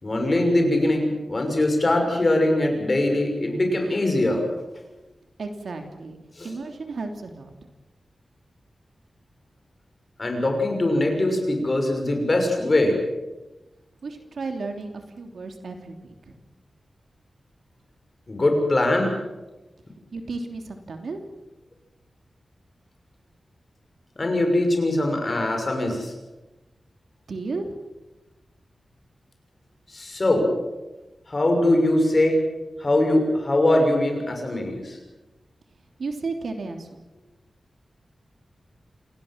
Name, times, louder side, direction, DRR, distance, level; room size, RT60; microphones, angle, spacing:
voice 1, 0.0-4.5 6.4-6.5 10.2-13.0 18.3-19.1 24.2-26.1 29.9-30.5 31.3-32.4 32.8-35.0, left 1 dB, 30° left, 3 dB, 6.1 m, -22 dB
voice 2, 5.4-6.2 6.4-7.7 14.0-16.3 20.1-21.3 27.3-27.7 36.0-36.9, right 3 dB, 70° right, 5 dB, 3.0 m, -33 dB
28.0 x 18.5 x 7.5 m, 1.1 s
wide cardioid pair, 145°, 0 cm